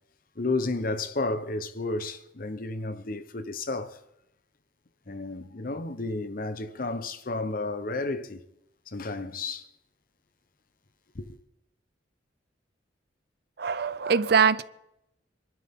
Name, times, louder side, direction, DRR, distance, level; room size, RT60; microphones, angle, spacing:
voice 1, 0.4-4.0 5.1-8.4 8.9-9.7 11.1-11.4, left 2 dB, 50° left, 0.9 m, -32 dB
voice 2, 13.6-14.6, right 6 dB, 55° right, 0.6 m, -22 dB
26.5 x 12.5 x 3.7 m
head